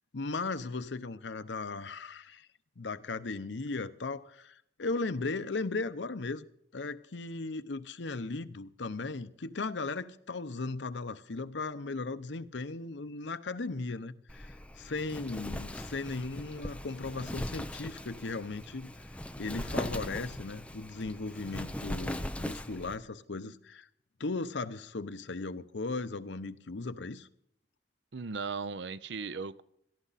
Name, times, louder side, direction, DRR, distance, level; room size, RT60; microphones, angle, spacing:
voice 1, 0.1-2.5 2.8-6.4 6.7-18.9 19.4-23.9 24.2-27.3, left 3 dB, 80° left, 0.8 m, -37 dB
Wind, 14.3-23.0, left 1 dB, 5° left, 0.7 m, -40 dB
voice 2, 28.1-29.6, right 5 dB, 75° right, 0.7 m, -37 dB
17.0 x 13.5 x 4.1 m
head